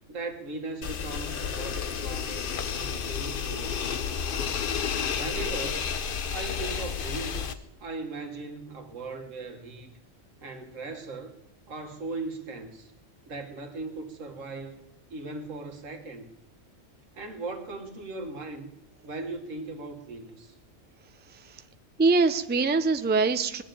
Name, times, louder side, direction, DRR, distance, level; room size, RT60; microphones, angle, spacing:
voice 1, 0.1-4.2 5.1-5.8 6.3-10.0 10.4-11.4 11.7-12.9 13.3-14.9 15.1-16.3 17.1-18.7 19.0-20.6, right 3 dB, 85° right, 5 dB, 1.8 m, -38 dB
sound 1, 0.8-7.5, left 7 dB, 50° left, 0.8 m, -31 dB
voice 2, 21.3-21.6 22.0-23.6, right 4 dB, 15° right, 9 dB, 0.4 m, -24 dB
20.5 x 7.2 x 9.2 m, 0.97 s
omnidirectional pair, 1.3 m